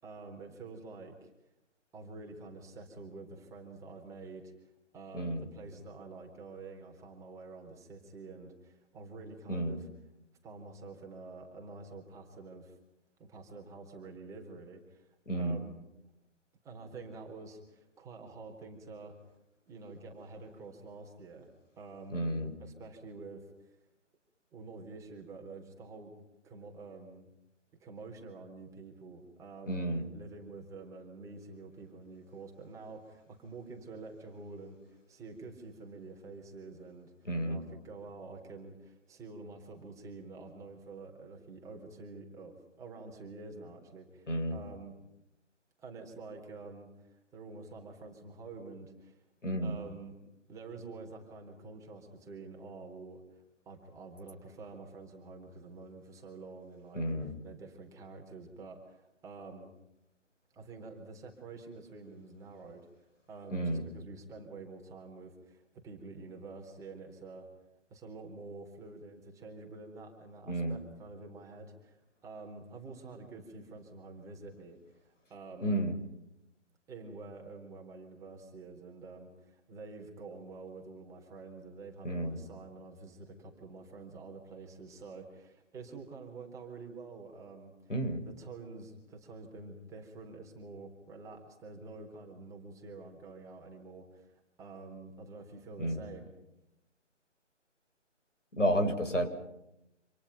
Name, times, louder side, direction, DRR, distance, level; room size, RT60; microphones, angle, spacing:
voice 1, 0.0-1.3 1.9-9.9 10.4-12.8 13.2-15.8 16.6-19.1 19.7-21.5 21.8-22.2 22.6-23.8 24.5-26.1 26.4-27.3 27.8-29.8 30.1-44.9 45.8-49.2 49.6-50.1 50.5-53.2 53.7-59.7 60.5-62.9 63.3-67.5 67.9-75.8 76.9-87.7 88.4-96.4, right 3 dB, 10° right, 1 dB, 3.9 m, -48 dB
voice 2, 5.1-5.4 9.5-9.8 15.3-15.6 22.1-22.5 29.7-30.1 37.3-37.6 44.3-44.6 49.4-49.8 56.9-57.4 63.5-63.8 70.5-70.8 75.6-76.0 82.0-82.4 87.9-88.2 95.8-96.0 98.6-99.3, right 1 dB, 80° left, 6 dB, 7.3 m, -31 dB
30.0 x 27.5 x 5.8 m, 0.85 s
figure-of-eight pair, 145°, 37 cm